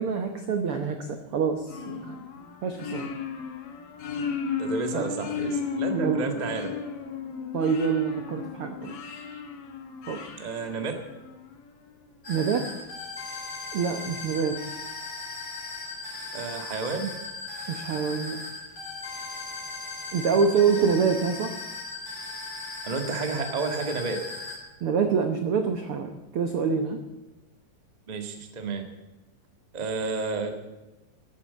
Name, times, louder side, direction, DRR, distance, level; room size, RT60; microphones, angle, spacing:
voice 1, 0.0-2.2 2.6-3.1 4.9-5.1 5.9-6.4 7.5-9.0 10.1-10.2 12.3-12.7 13.7-14.6 17.7-18.4 20.1-21.6 24.8-27.0, right 6 dB, 85° right, 6 dB, 1.2 m, -26 dB
sound 1, 1.7-11.5, left 6 dB, 60° left, 2.3 m, -34 dB
voice 2, 4.6-6.7 10.4-10.9 16.3-17.1 20.7-20.8 22.8-24.2 28.1-28.8 29.7-30.5, right 4 dB, 65° right, 5 dB, 0.4 m, -31 dB
sound 2, 12.2-24.6, left 3 dB, 30° left, 4.0 m, -38 dB
13.0 x 9.5 x 8.2 m, 1.1 s
omnidirectional pair, 4.1 m